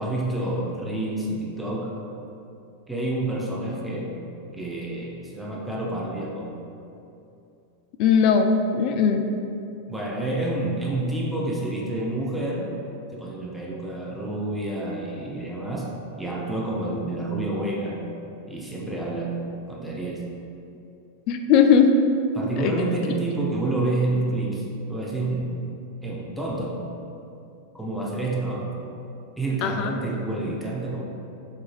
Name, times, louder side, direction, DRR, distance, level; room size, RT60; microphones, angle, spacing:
voice 1, 0.0-2.0 2.9-4.1 4.5-6.5 9.9-12.7 13.1-18.0 18.5-19.4 19.7-20.3 22.3-25.6 26.0-26.8 27.7-28.7 29.4-31.0, right 2 dB, 5° right, -4 dB, 0.6 m, -28 dB
voice 2, 8.0-8.5 8.7-9.2 21.3-21.9 22.6-22.8 29.6-29.9, left 7 dB, 40° left, 5 dB, 0.3 m, -18 dB
3.8 x 2.5 x 4.6 m, 2.7 s
figure-of-eight pair, 90°, 0 cm